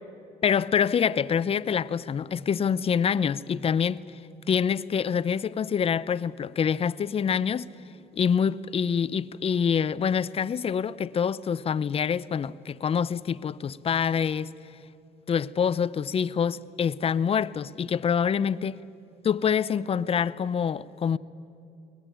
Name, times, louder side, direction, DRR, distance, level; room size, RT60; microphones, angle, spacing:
voice 1, 0.4-4.0 4.5-7.7 8.2-14.5 15.3-18.8 19.2-21.2, left 7 dB, 35° left, 0.6 m, -26 dB
22.5 x 19.5 x 9.2 m
cardioid pair, 110°, 17 cm